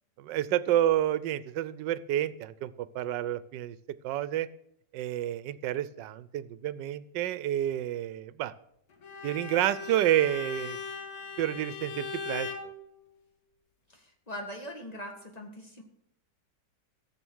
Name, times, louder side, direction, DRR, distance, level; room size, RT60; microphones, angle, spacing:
voice 1, 0.2-3.7 4.0-4.5 4.9-8.5 9.2-10.8 11.4-12.5, right 12 dB, 80° right, 17 dB, 1.3 m, -29 dB
Bowed string instrument, 9.0-12.7, left 5 dB, 55° left, 1.9 m, -39 dB
voice 2, 13.9-15.8, equal, 20° left, 3 dB, 1.8 m, -41 dB
14.5 x 7.7 x 6.3 m, 0.76 s
omnidirectional pair, 1.9 m